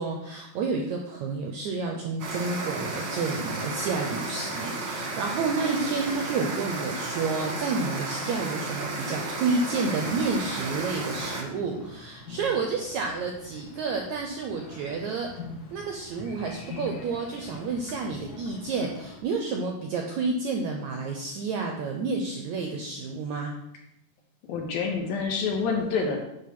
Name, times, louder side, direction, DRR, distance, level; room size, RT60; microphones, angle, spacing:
voice 1, 0.0-15.3 15.7-23.5, right 4 dB, 80° right, 2 dB, 1.7 m, -30 dB
sound 1, 2.2-11.4, right 3 dB, 60° right, 1.4 m, -33 dB
sound 2, 10.0-19.2, left 3 dB, 45° left, 1.2 m, -44 dB
voice 2, 24.5-26.2, left 5 dB, 75° left, 0 dB, 3.3 m, -27 dB
10.0 x 3.7 x 6.0 m, 0.81 s
omnidirectional pair, 4.2 m